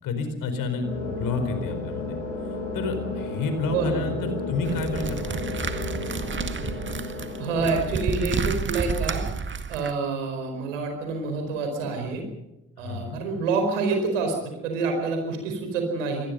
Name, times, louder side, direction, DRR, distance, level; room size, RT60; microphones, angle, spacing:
voice 1, 0.0-2.2 2.7-5.4 12.8-13.2, left 3 dB, 60° left, 8 dB, 4.6 m, -30 dB
sound 1, 0.8-8.1, left 3 dB, 90° left, 6.1 m, -33 dB
voice 2, 3.7-4.1 7.4-9.2 9.7-12.2 12.8-14.4 14.6-16.3, right 4 dB, 75° right, 4 dB, 4.9 m, -27 dB
sound 2, 4.6-9.9, right 5 dB, 30° right, 1.9 m, -30 dB
27.0 x 19.5 x 5.5 m, 0.95 s
figure-of-eight pair, 45°, 37 cm